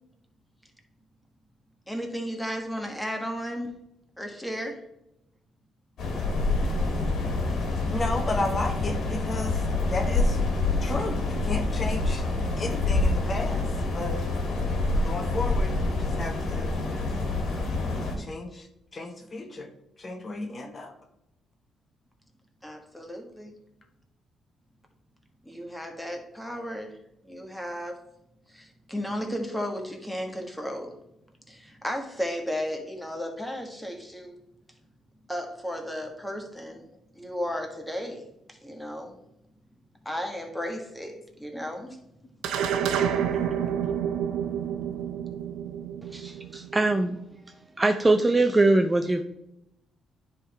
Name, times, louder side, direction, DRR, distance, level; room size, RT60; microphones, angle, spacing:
voice 1, 1.9-3.7 4.2-4.8 22.6-23.5 25.4-27.0 27.2-28.0 28.5-31.0 31.5-34.4 35.3-36.9 37.1-39.1 40.0-42.0 43.3-43.4, equal, 5° left, 2 dB, 1.6 m, -34 dB
sound 1, 6.0-18.2, left 2 dB, 70° left, 1.9 m, -27 dB
voice 2, 7.9-10.4 10.8-12.2 12.6-14.2 15.0-16.7 17.7-18.7 18.9-19.7 20.0-20.9, left 2 dB, 35° left, 5 dB, 1.2 m, -33 dB
sound 2, 42.4-47.1, right 8 dB, 85° right, 0.7 m, -29 dB
voice 3, 46.1-47.2 47.8-49.2, right 2 dB, 20° right, 6 dB, 0.5 m, -22 dB
9.8 x 3.8 x 4.4 m, 0.81 s
cardioid pair, 90°, 0 cm